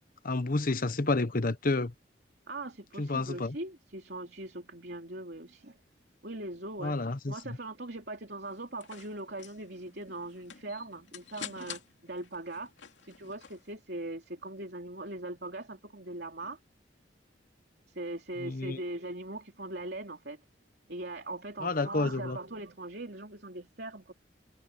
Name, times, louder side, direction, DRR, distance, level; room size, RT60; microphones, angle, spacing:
voice 1, 0.2-1.9 3.0-3.5 6.8-7.6 18.4-18.8 21.6-22.4, left 2 dB, 50° left, 1.1 m, -30 dB
voice 2, 2.5-5.8 6.2-12.7 13.0-16.6 17.9-20.4 20.9-24.1, right 2 dB, 60° right, 3.3 m, -40 dB
sound 1, 8.4-13.7, left 8 dB, 80° left, 2.7 m, -48 dB
head